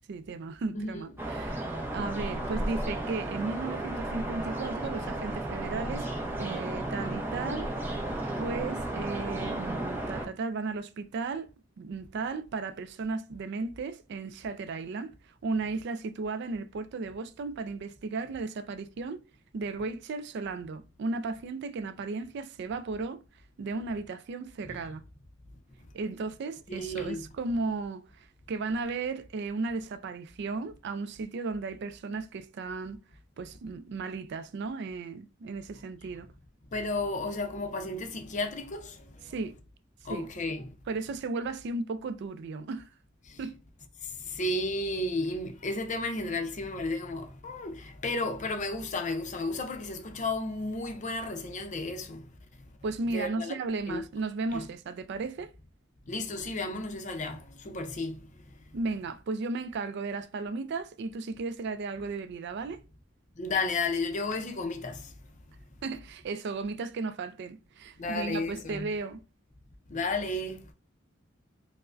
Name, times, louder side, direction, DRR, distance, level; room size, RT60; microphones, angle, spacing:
voice 1, 0.1-1.6 1.9-6.1 6.4-8.0 8.4-11.5 11.8-15.1 15.4-19.2 19.5-23.2 23.6-25.0 25.9-33.0 33.4-36.3 39.3-39.5 40.1-40.3 40.9-42.9 43.4-43.5 52.8-55.5 58.7-62.8 65.8-69.2, right 3 dB, 60° right, 0.3 m, -35 dB
sound 1, 1.2-10.3, right 1 dB, 10° right, 0.6 m, -34 dB
voice 2, 26.7-27.3 36.7-39.3 40.0-40.7 43.2-43.4 44.0-52.3 53.1-53.5 53.9-54.0 54.5-54.7 56.1-58.3 63.4-65.1 68.0-68.9 69.9-70.7, left 2 dB, 40° left, 0.5 m, -33 dB
4.7 x 2.0 x 2.5 m
head